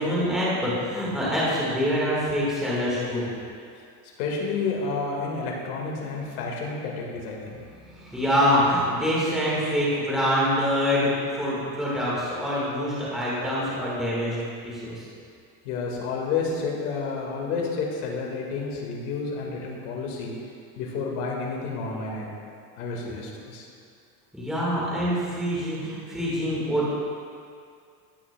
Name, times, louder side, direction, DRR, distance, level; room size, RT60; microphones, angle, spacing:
voice 1, 0.0-3.3 7.6-14.4 14.6-15.0 24.3-26.9, equal, ahead, -8 dB, 1.6 m, -25 dB
voice 2, 4.2-7.6 15.7-20.3 20.8-22.3 22.8-23.7, left 4 dB, 80° left, -1 dB, 1.9 m, -30 dB
16.0 x 5.8 x 2.2 m, 2.3 s
supercardioid pair, 160°, 44 cm